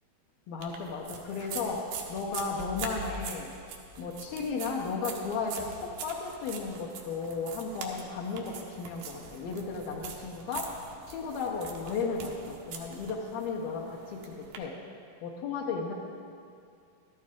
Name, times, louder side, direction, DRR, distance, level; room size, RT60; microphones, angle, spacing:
voice 1, 0.5-3.5 4.0-10.7 11.1-14.7 15.2-15.9, left 4 dB, 80° left, -1 dB, 2.7 m, -34 dB
sound 1, 0.6-14.6, right 5 dB, 90° right, 3.0 m, -43 dB
14.0 x 13.0 x 3.6 m, 2.4 s
omnidirectional pair, 4.4 m